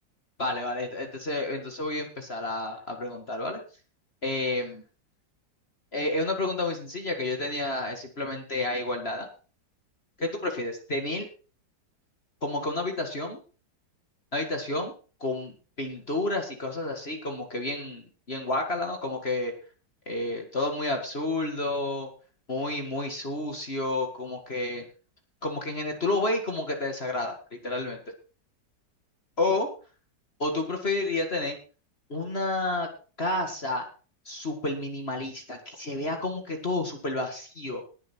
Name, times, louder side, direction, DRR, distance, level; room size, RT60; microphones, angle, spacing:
voice 1, 0.4-3.6 4.2-4.8 5.9-9.3 10.2-11.3 12.4-13.4 14.3-14.9 15.2-19.5 20.1-22.1 22.5-24.9 25.4-28.0 29.4-29.7 30.4-31.6 32.1-32.9 33.2-33.9 34.3-37.9, left 2 dB, 35° left, 3 dB, 2.2 m, -30 dB
19.5 x 7.5 x 4.5 m, 0.37 s
omnidirectional pair, 1.9 m